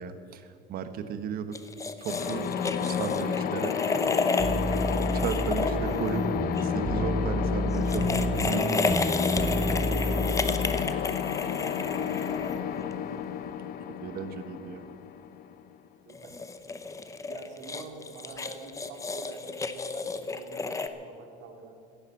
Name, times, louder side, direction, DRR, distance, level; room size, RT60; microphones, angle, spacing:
voice 1, 0.0-1.6 2.0-3.7 5.2-6.2 6.6-9.0 14.0-14.8, right 7 dB, 50° right, 10 dB, 1.3 m, -35 dB
sound 1, 1.5-6.7 7.7-12.9 16.1-20.9, left 4 dB, 15° left, 0.8 m, -32 dB
sound 2, 2.1-15.7, left 7 dB, 45° left, 0.8 m, -31 dB
sound 3, 4.4-10.8, right 2 dB, 20° right, 0.6 m, -31 dB
voice 2, 4.6-5.1 5.5-6.4 9.9-11.0 12.6-13.4 16.1-16.5 17.3-21.8, right 4 dB, 65° right, 2 dB, 3.0 m, -46 dB
16.0 x 10.0 x 7.7 m, 2.4 s
cardioid pair, 135°, 20 cm